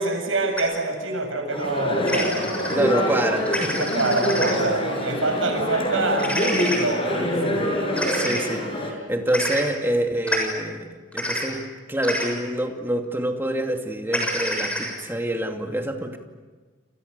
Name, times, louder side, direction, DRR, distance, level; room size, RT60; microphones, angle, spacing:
voice 1, 0.0-2.9 3.7-8.1, right 2 dB, 85° right, 4 dB, 7.9 m, -26 dB
sound 1, 0.6-0.7 2.1-2.7 3.5-4.5 6.2-6.8 8.0-8.4 9.3-9.6 10.3-10.4 11.1-11.4 12.0-12.3 14.1-14.9, equal, 5° left, 6.9 m, -27 dB
sound 2, 1.5-8.9, equal, 30° left, 6.5 m, -25 dB
voice 2, 2.7-3.9 7.9-16.2, right 1 dB, 10° right, 3 dB, 2.5 m, -26 dB
29.5 x 29.5 x 6.9 m, 1.4 s
head